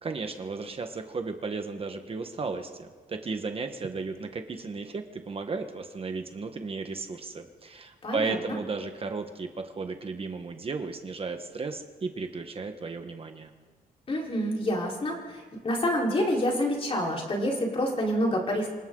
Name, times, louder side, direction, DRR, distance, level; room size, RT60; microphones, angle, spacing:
voice 1, 0.0-13.5, right 4 dB, 40° right, 6 dB, 1.4 m, -34 dB
voice 2, 8.0-8.5 14.1-18.7, equal, 35° left, -2 dB, 4.5 m, -28 dB
27.0 x 27.0 x 3.9 m, 1.4 s
wide cardioid pair, 145°, 15 cm